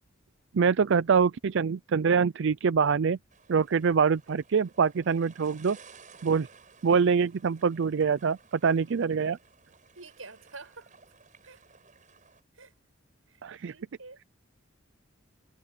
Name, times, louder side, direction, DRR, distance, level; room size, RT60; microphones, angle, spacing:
voice 1, 0.5-3.2 3.5-5.8 6.2-6.5 6.8-9.4 13.4-13.7, right 6 dB, 65° right, 0.5 m, -24 dB
sound 1, 3.3-12.4, right 5 dB, 40° right, 7.3 m, -56 dB
voice 2, 9.9-10.9 11.4-11.6 12.5-12.7 13.3-14.2, right 3 dB, 90° right, 7.7 m, -48 dB
head